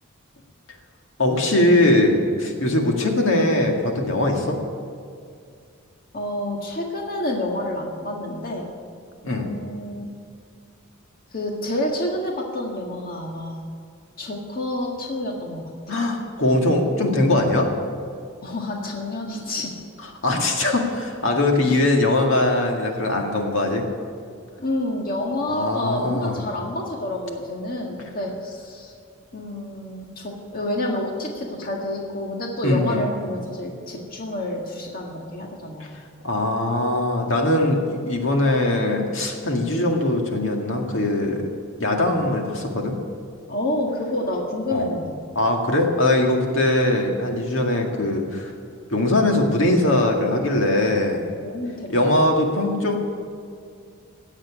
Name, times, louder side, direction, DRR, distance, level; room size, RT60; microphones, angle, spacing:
voice 1, 1.2-4.6 9.2-9.5 15.9-17.7 20.2-23.9 25.5-26.3 32.6-33.1 36.2-41.4 41.8-43.0 44.7-44.9 45.4-48.5 48.9-51.2 51.9-53.0, left 1 dB, 65° left, 2 dB, 2.0 m, -21 dB
voice 2, 6.1-8.7 9.3-10.0 11.3-13.6 14.2-15.7 18.4-19.7 20.4-20.5 21.6-21.8 24.6-28.9 29.3-36.0 43.5-45.1 51.4-52.3, left 1 dB, 45° left, 0 dB, 1.8 m, -29 dB
17.5 x 7.4 x 9.9 m, 2.3 s
head